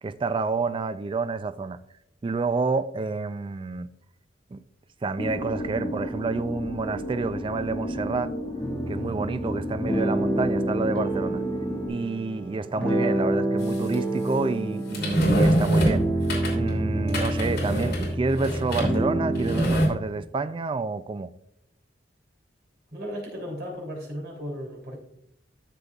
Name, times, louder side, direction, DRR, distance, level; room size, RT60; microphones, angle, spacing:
voice 1, 0.0-1.8 2.2-3.9 4.5-4.6 5.0-8.3 8.9-11.4 11.9-16.0 16.5-21.3, right 3 dB, 30° right, 0.3 m, -29 dB
sound 1, 5.2-11.9, equal, 25° left, 1.5 m, -33 dB
sound 2, 8.6-19.6, right 1 dB, 5° left, 2.0 m, -28 dB
sound 3, 13.7-13.9 14.9-16.7 17.1-19.1 19.3-19.9, right 1 dB, 60° left, 2.9 m, -24 dB
voice 2, 22.9-25.0, equal, 60° right, 3.1 m, -35 dB
13.0 x 6.8 x 2.3 m
head